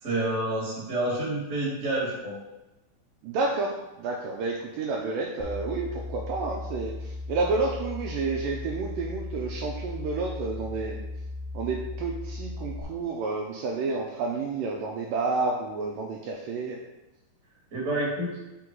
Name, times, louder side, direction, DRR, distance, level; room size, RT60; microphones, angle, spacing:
voice 1, 0.0-2.3 17.7-18.4, right 1 dB, 30° right, -5 dB, 1.4 m, -28 dB
voice 2, 3.2-11.0 11.5-16.8, right 3 dB, 85° right, -1 dB, 2.0 m, -30 dB
sound 1, 5.4-12.8, left 2 dB, 75° left, 2.3 m, -37 dB
5.9 x 3.7 x 4.6 m, 0.97 s
omnidirectional pair, 4.4 m